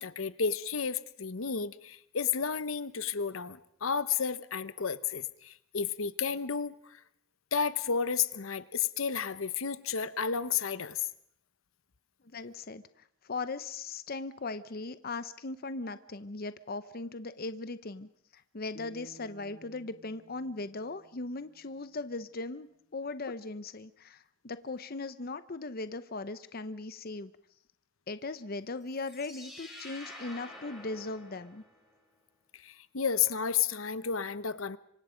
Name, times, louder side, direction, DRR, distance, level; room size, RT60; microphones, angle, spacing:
voice 1, 0.0-7.0 7.5-11.0 32.6-34.8, left 6 dB, 80° left, 14 dB, 0.9 m, -32 dB
voice 2, 12.2-27.3 28.1-31.6, left 3 dB, 45° left, 13 dB, 0.8 m, -39 dB
sound 1, 18.7-21.9, right 3 dB, 20° left, 5.3 m, -56 dB
sound 2, 28.8-31.9, left 1 dB, ahead, 6.0 m, -48 dB
26.0 x 24.5 x 5.1 m, 0.70 s
head